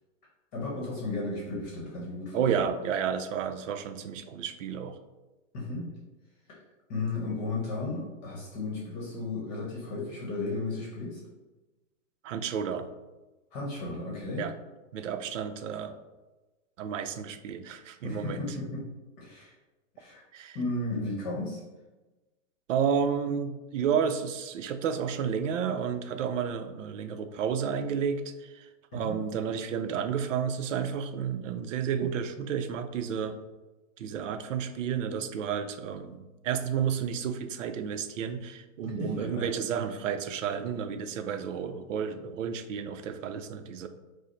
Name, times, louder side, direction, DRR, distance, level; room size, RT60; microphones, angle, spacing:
voice 1, 0.5-2.5 5.5-5.9 6.9-11.2 13.5-14.4 18.0-18.8 19.2-19.5 19.9-20.2 20.5-21.6 28.9-29.2 39.0-39.5, left 2 dB, 35° left, -4 dB, 0.9 m, -34 dB
voice 2, 2.3-5.0 12.2-12.9 14.4-14.5 14.9-16.0 16.8-18.5 20.3-20.6 22.7-28.7 28.9-33.4 34.0-43.9, right 7 dB, 75° right, 9 dB, 0.5 m, -31 dB
4.8 x 2.1 x 3.1 m, 1.1 s
hypercardioid pair, 150°, 39 cm